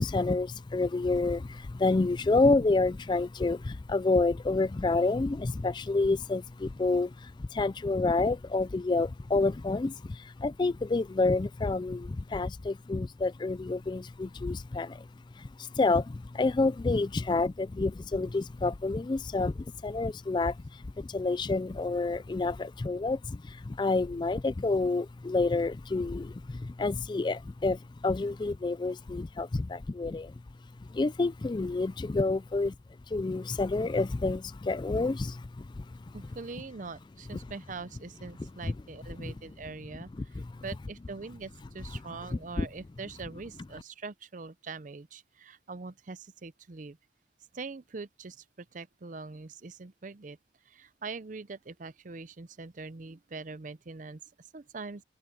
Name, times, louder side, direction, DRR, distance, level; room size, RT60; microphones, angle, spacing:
voice 1, 0.0-15.1 15.4-30.3 30.9-32.7 33.1-36.0 38.6-38.7 39.2-39.3 40.2-40.5 42.3-42.7, left 3 dB, 25° left, 0.3 m, -29 dB
voice 2, 36.1-47.0 47.5-50.4 50.7-55.0, right 4 dB, 45° right, 0.6 m, -43 dB
head